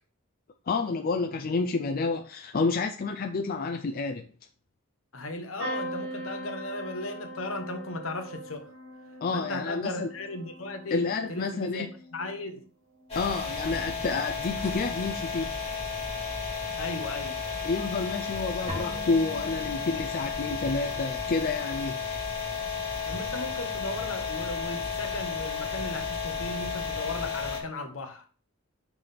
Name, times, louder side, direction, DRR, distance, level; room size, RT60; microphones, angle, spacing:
voice 1, 0.7-4.3 9.2-10.1 10.9-11.9 13.1-15.5 17.6-22.2, left 4 dB, 45° left, 0.4 m, -29 dB
voice 2, 5.1-8.7 9.3-11.9 12.1-12.6 16.8-17.4 23.1-28.2, left 2 dB, 70° left, 1.1 m, -36 dB
sound 1, 5.6-13.4 13.9-14.4 15.7-15.9 16.1-16.2, equal, 70° right, 2.1 m, -42 dB
sound 2, 13.1-27.6, left 5 dB, 30° left, 2.3 m, -33 dB
sound 3, 18.7-20.5, equal, 30° right, 1.2 m, -41 dB
6.1 x 3.4 x 5.7 m
head